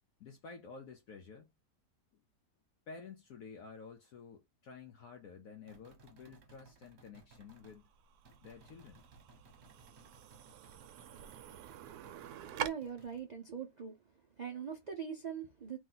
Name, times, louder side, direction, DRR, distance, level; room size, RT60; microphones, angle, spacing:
voice 1, 0.2-1.5 2.1-2.2 2.9-7.9 8.4-9.0, left 5 dB, 65° left, 0.9 m, -51 dB
sound 1, 5.7-7.8 8.2-13.2, right 3 dB, 45° right, 1.1 m, -61 dB
sound 2, 7.3-12.7, right 10 dB, 75° right, 1.0 m, -46 dB
voice 2, 12.6-14.0 14.4-15.8, right 7 dB, 90° right, 0.3 m, -42 dB
3.1 x 3.0 x 3.8 m
omnidirectional pair, 1.8 m